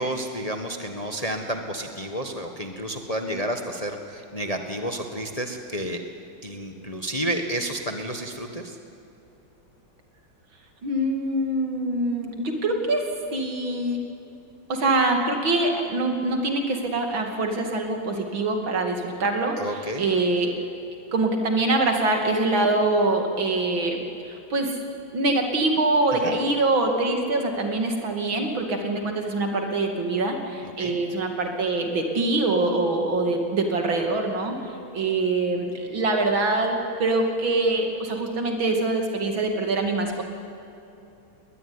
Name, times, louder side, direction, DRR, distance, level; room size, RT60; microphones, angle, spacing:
voice 1, 0.0-6.0 6.4-8.8 19.6-20.1 26.2-26.4 30.8-30.9, right 1 dB, 20° left, 5 dB, 1.3 m, -30 dB
voice 2, 10.8-13.0 13.3-14.0 14.7-19.6 20.0-20.5 21.1-24.7 25.1-34.6 34.9-40.2, right 2 dB, 75° right, 3 dB, 3.3 m, -24 dB
20.5 x 20.0 x 9.8 m, 2.8 s
omnidirectional pair, 2.2 m